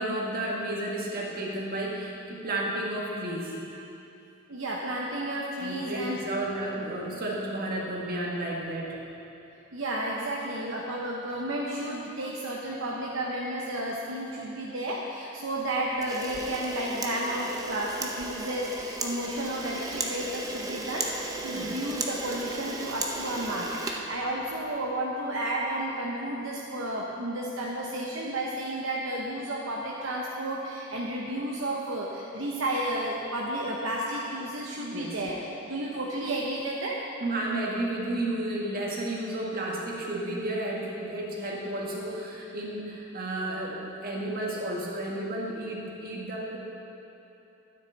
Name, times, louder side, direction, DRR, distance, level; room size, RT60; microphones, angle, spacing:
voice 1, 0.0-3.7 5.6-8.9 21.5-21.7 34.9-35.2 37.2-46.6, right 1 dB, 50° right, -3 dB, 1.8 m, -32 dB
voice 2, 4.5-6.3 6.9-7.1 9.7-35.4 35.6-37.0, right 1 dB, 70° right, -3 dB, 0.9 m, -32 dB
Camera, 16.0-24.7, right 2 dB, 20° right, 0.7 m, -35 dB
12.5 x 9.6 x 4.0 m, 2.9 s
head